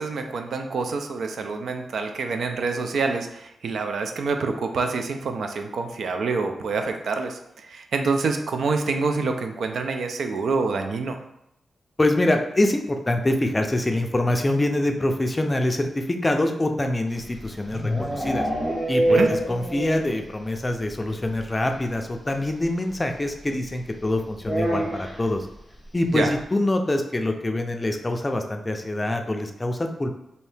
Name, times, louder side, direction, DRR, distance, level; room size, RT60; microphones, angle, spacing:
voice 1, 0.0-11.2 19.1-19.3 26.1-26.3, right 4 dB, 75° right, 5 dB, 0.4 m, -26 dB
voice 2, 12.0-18.5 18.9-25.5 25.9-30.1, left 1 dB, 25° left, 5 dB, 0.4 m, -25 dB
sound 1, 17.2-20.2 20.5-20.6 20.9-21.0 21.2-21.4 22.6-22.7 24.4-25.3, right 1 dB, 5° right, 1.0 m, -25 dB
2.7 x 2.7 x 3.3 m, 0.82 s
cardioid pair, 80°, 0 cm